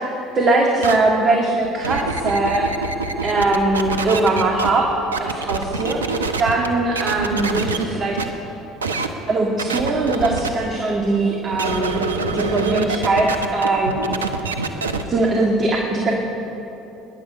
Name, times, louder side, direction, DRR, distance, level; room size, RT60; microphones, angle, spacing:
voice 1, 0.3-2.7 3.2-4.9 5.2-6.0 6.4-8.2 9.3-12.0 12.3-14.1 15.1-16.1, right 2 dB, 40° right, 0 dB, 2.0 m, -20 dB
sound 1, 0.8-1.0 1.6-4.7 5.1-6.7 7.0-7.8 8.2-8.3 8.8-9.1 9.6-10.5 11.5-15.0, right 4 dB, 85° right, 0.8 m, -25 dB
21.5 x 10.5 x 5.5 m, 3.0 s
figure-of-eight pair, 60°, 0 cm